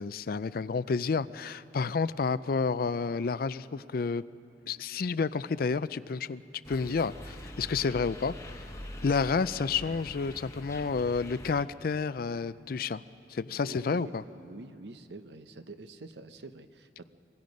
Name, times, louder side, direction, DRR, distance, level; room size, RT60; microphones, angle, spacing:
voice 1, 0.0-4.2 4.7-6.4 6.7-8.3 9.0-13.0 13.3-14.2, left 4 dB, 55° left, 16 dB, 0.4 m, -30 dB
sound 1, 6.6-11.6, left 1 dB, 15° left, 1.2 m, -44 dB
voice 2, 13.6-17.0, right 2 dB, 70° right, 10 dB, 0.8 m, -46 dB
25.5 x 21.5 x 5.3 m, 2.7 s
head